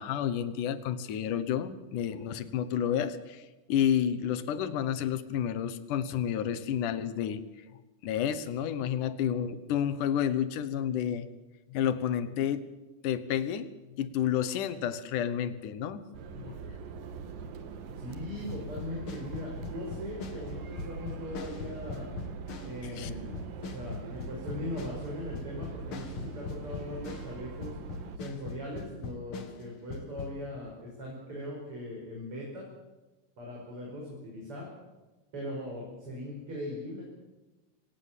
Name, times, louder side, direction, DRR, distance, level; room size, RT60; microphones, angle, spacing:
voice 1, 0.0-7.4 8.0-11.3 11.7-12.7 13.0-13.7 14.0-16.0 16.4-16.6 23.0-23.1, left 9 dB, 65° left, 14 dB, 2.4 m, -30 dB
sound 1, 16.1-28.2, right 5 dB, 65° right, 3.1 m, -43 dB
voice 2, 17.9-22.1 22.6-27.7 28.1-32.7 33.4-34.7 35.3-37.0, left 1 dB, 35° right, -2 dB, 6.1 m, -40 dB
sound 2, 18.5-27.4 27.6-30.3, left 4 dB, 50° left, 1.8 m, -41 dB
25.0 x 18.0 x 7.5 m, 1.1 s
omnidirectional pair, 4.5 m